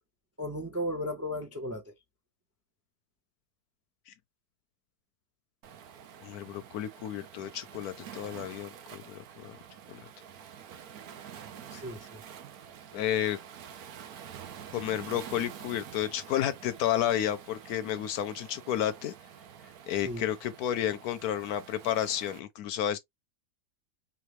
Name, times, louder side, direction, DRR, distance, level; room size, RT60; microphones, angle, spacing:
voice 1, 0.4-1.9 11.7-12.2 19.9-20.3, equal, 20° right, 0.3 m, -35 dB
Waves surf, 5.6-22.4, right 8 dB, 65° right, 1.0 m, -48 dB
voice 2, 6.2-9.6 9.9-10.1 12.9-13.4 14.7-19.1 19.9-23.0, left 11 dB, 70° left, 1.0 m, -31 dB
3.6 x 3.4 x 3.0 m
omnidirectional pair, 1.8 m